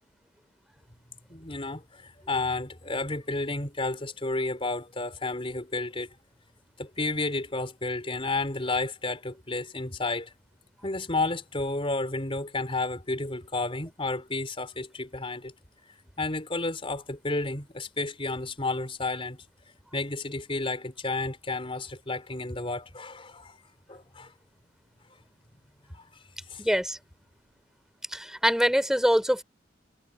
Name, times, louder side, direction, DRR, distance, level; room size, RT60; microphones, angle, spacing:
voice 1, 1.3-6.1 6.8-10.3 10.8-15.5 16.2-19.4 19.9-23.5 23.9-24.3 26.5-26.6, left 2 dB, 30° left, 4.3 m, -31 dB
voice 2, 26.6-27.0 28.1-29.4, equal, 5° right, 4.5 m, -24 dB
head